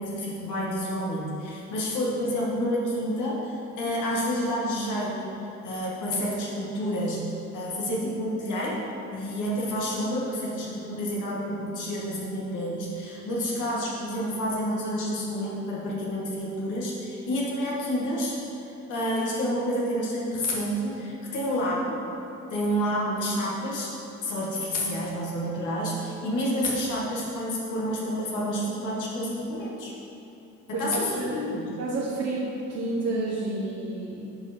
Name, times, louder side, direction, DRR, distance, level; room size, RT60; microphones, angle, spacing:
voice 1, 0.0-5.4 5.6-8.8 9.1-18.4 18.8-22.0 22.5-23.9 24.2-29.9 30.7-31.8, equal, 80° left, -4 dB, 1.8 m, -29 dB
voice 2, 30.7-31.5 31.8-34.3, right 2 dB, 65° right, -5 dB, 1.0 m, -30 dB
9.7 x 4.6 x 4.3 m, 2.9 s
cardioid pair, 90°, 30 cm